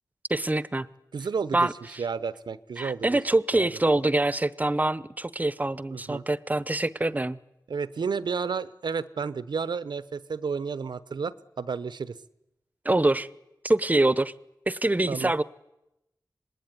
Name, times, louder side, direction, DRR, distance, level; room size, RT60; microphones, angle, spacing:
voice 1, 0.3-0.9 1.5-2.0 2.8-7.4 12.8-13.3 13.6-14.3 14.7-15.4, right 2 dB, 20° right, 17 dB, 0.9 m, -25 dB
voice 2, 1.1-1.7 2.0-3.2 3.5-3.7 5.9-6.2 7.7-12.2 15.1-15.3, right 5 dB, 85° right, 15 dB, 1.0 m, -31 dB
26.0 x 20.5 x 9.6 m, 0.91 s
wide cardioid pair, 75°, 7 cm